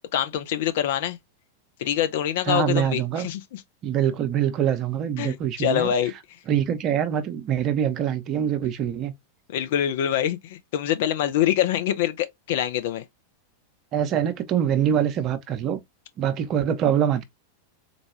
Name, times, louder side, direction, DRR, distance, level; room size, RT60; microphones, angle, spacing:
voice 1, 0.1-1.2 1.8-3.6 5.2-6.1 9.5-13.0, left 11 dB, 55° left, 0.5 m, -25 dB
voice 2, 2.5-3.3 3.8-5.9 6.5-9.1 13.9-15.8 16.2-17.2, right 9 dB, 35° right, 0.6 m, -24 dB
4.0 x 2.2 x 3.0 m
figure-of-eight pair, 90°, 0 cm